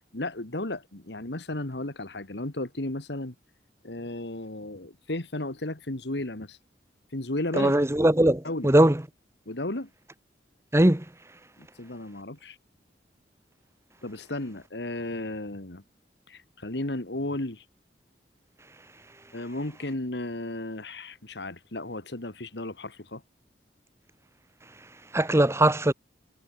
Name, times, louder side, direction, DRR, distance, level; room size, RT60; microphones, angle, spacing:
voice 1, 0.1-3.3 3.8-6.6 7.1-7.7 8.4-8.7 9.5-9.9 11.6-12.6 14.0-15.8 16.3-17.6 19.3-23.2, left 1 dB, 70° left, 2.1 m, -34 dB
voice 2, 7.6-9.0 10.7-11.0 25.1-25.9, right 1 dB, 15° right, 1.2 m, -20 dB
head